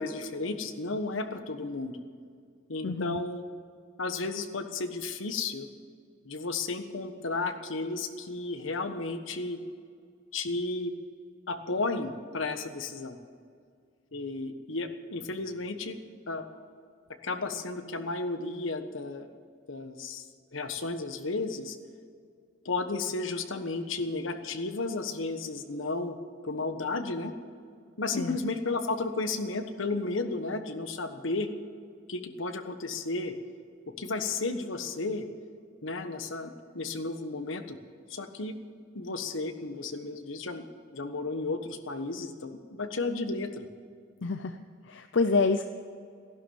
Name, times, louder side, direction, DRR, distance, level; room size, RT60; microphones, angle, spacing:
voice 1, 0.0-1.9 2.7-3.4 4.0-5.7 6.2-9.6 10.3-10.9 11.5-13.2 14.1-16.0 16.3-16.4 17.2-19.3 19.7-20.2 20.5-21.8 22.6-26.2 26.4-27.3 28.0-31.5 32.1-33.3 34.0-35.3 35.8-37.8 38.1-38.6 38.9-40.6 40.9-43.6, left 3 dB, 85° left, 8 dB, 1.3 m, -33 dB
voice 2, 2.8-3.2 28.1-28.4 44.2-44.6 44.9-45.6, left 4 dB, 65° left, 8 dB, 0.6 m, -27 dB
16.0 x 11.5 x 7.1 m, 2.2 s
head